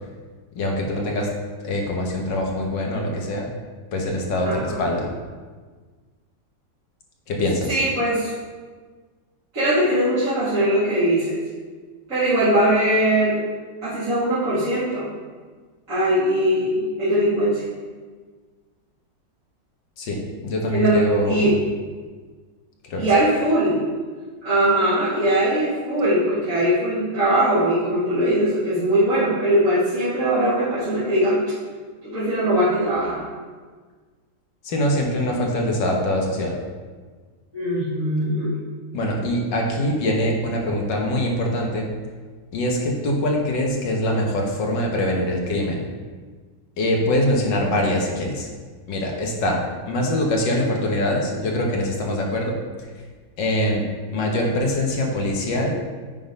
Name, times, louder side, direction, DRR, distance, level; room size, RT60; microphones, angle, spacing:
voice 1, 0.5-1.3 1.6-3.5 3.9-5.1 7.3-7.8 20.0-21.6 22.8-23.1 34.6-36.5 38.9-41.9 42.5-45.9 46.8-48.5 48.9-52.5 53.4-55.7, left 1 dB, 75° left, 0 dB, 1.8 m, -23 dB
voice 2, 4.4-4.8 7.7-8.3 9.5-11.4 12.1-13.4 13.8-15.1 15.9-17.6 20.7-21.5 23.0-23.8 24.4-31.4 32.0-33.2 37.5-38.5, right 1 dB, 45° right, -14 dB, 2.6 m, -20 dB
9.3 x 3.9 x 5.2 m, 1.5 s
omnidirectional pair, 2.0 m